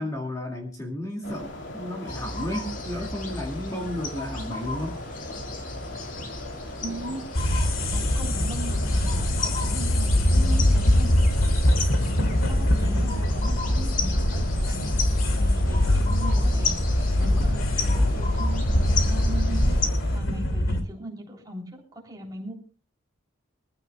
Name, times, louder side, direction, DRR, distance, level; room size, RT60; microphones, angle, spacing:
voice 1, 0.0-5.0, left 1 dB, 15° left, 0 dB, 2.2 m, -33 dB
sound 1, 1.2-20.2, left 2 dB, 65° left, 2.9 m, -40 dB
sound 2, 2.1-19.9, left 2 dB, 40° left, 2.2 m, -31 dB
voice 2, 6.8-7.2 7.9-11.2 12.1-14.9 15.3-19.8 20.1-22.5, right 1 dB, 20° right, 0 dB, 3.3 m, -38 dB
sound 3, 7.4-20.8, left 1 dB, 85° left, 2.3 m, -23 dB
24.0 x 15.0 x 2.3 m, 0.36 s
head